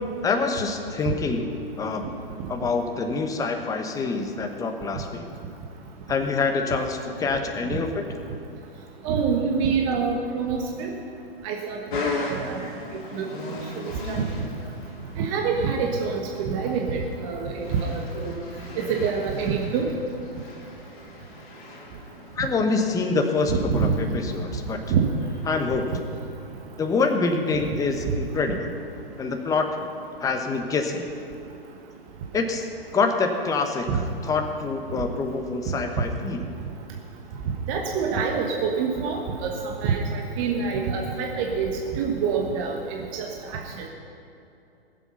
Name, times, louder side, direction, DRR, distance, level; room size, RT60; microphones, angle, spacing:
voice 1, 0.2-1.5 1.8-2.1 2.5-5.3 6.1-8.0 22.4-24.8 25.5-25.9 26.8-28.7 29.2-29.7 30.2-31.1 32.3-32.7 32.9-36.5, left 4 dB, 10° left, 4 dB, 1.1 m, -26 dB
voice 2, 9.0-10.9 11.4-12.7 13.1-13.3 14.1-14.2 15.2-18.3 18.8-19.9 23.5-23.9 24.9-25.0 33.9-34.0 37.7-39.5 39.8-43.3 43.8-43.9, right 5 dB, 35° right, 1 dB, 1.4 m, -26 dB
sound 1, 11.9-26.3, left 3 dB, 55° left, 2.5 m, -38 dB
20.0 x 7.8 x 5.7 m, 2.7 s
figure-of-eight pair, 115°, 30 cm